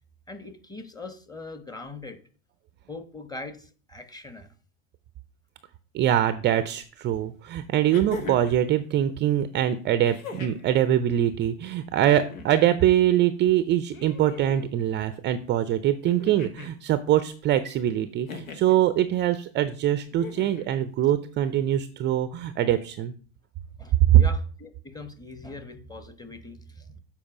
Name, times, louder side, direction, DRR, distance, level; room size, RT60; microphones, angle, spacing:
voice 1, 0.3-2.2 2.9-4.5 23.8-27.0, left 2 dB, 10° left, 9 dB, 1.1 m, -41 dB
voice 2, 5.9-23.1 24.1-24.2, right 11 dB, 30° right, 13 dB, 0.5 m, -23 dB
sound 1, 6.8-6.9 7.9-8.6 10.0-10.7 12.0-12.7 13.9-14.7 16.1-16.8 18.3-18.8 20.1-20.7 22.0-22.1, left 4 dB, 85° left, 1.5 m, -40 dB
7.3 x 4.6 x 5.9 m, 0.40 s
hypercardioid pair, 95°, 40 cm